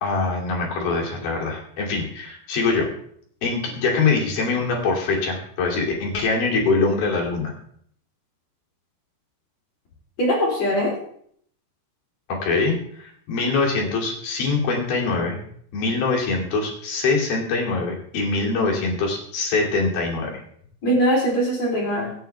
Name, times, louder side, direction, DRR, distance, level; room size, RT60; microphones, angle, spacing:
voice 1, 0.0-2.9 3.4-7.5 12.3-15.4 15.7-20.3, left 3 dB, 60° left, -1 dB, 4.5 m, -23 dB
voice 2, 10.2-10.9 20.8-22.1, equal, 40° left, -3 dB, 4.8 m, -21 dB
25.0 x 9.0 x 3.4 m, 0.65 s
omnidirectional pair, 4.9 m